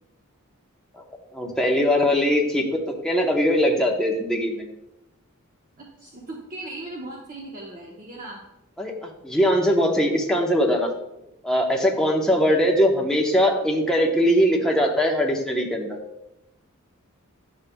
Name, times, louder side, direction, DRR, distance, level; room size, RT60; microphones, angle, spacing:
voice 1, 1.3-4.7 8.8-10.9 11.4-16.0, equal, 5° left, -1 dB, 0.9 m, -21 dB
voice 2, 5.8-8.4 12.4-12.5, right 2 dB, 40° right, -3 dB, 1.0 m, -38 dB
10.0 x 6.9 x 2.3 m, 0.86 s
head